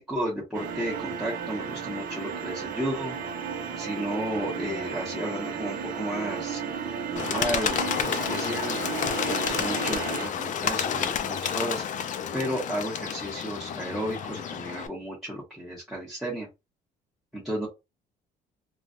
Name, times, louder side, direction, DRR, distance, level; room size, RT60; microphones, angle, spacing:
voice 1, 0.0-3.1 3.8-8.8 9.3-11.8 12.3-16.5 17.3-17.7, equal, ahead, -6 dB, 1.1 m, -33 dB
sound 1, 0.5-10.3, right 6 dB, 55° right, 0.7 m, -34 dB
Bird, 7.2-14.9, left 8 dB, 50° left, 0.5 m, -30 dB
3.2 x 2.3 x 2.6 m, 0.24 s
cardioid pair, 110°, 17 cm